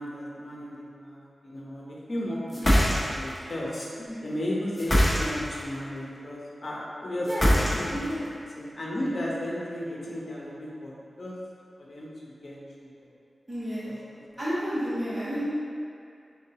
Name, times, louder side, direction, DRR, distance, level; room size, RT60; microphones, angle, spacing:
voice 1, 0.0-2.6 3.0-3.9 4.2-7.9 8.6-11.3 11.8-12.1 12.4-12.9 13.8-13.9, left 1 dB, 55° left, -4 dB, 0.9 m, -34 dB
sound 1, 2.5-3.4 4.7-5.6 7.3-8.1, equal, 25° left, 0.9 m, -22 dB
voice 2, 7.9-8.2 13.5-13.9 14.4-15.4, equal, 25° right, -12 dB, 1.2 m, -31 dB
4.3 x 3.9 x 2.9 m, 2.4 s
wide cardioid pair, 65°, 0 cm